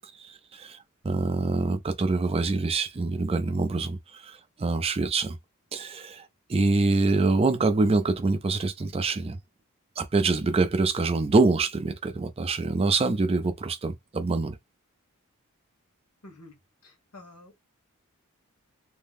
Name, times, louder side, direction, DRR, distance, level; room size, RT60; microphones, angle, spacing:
voice 1, 0.2-0.8 1.0-5.4 5.7-6.2 6.5-9.4 10.0-14.6, right 3 dB, 25° right, 0.4 m, -25 dB
voice 2, 16.2-16.6 16.8-17.6, left 2 dB, 80° left, 1.1 m, -49 dB
2.7 x 2.0 x 3.4 m
head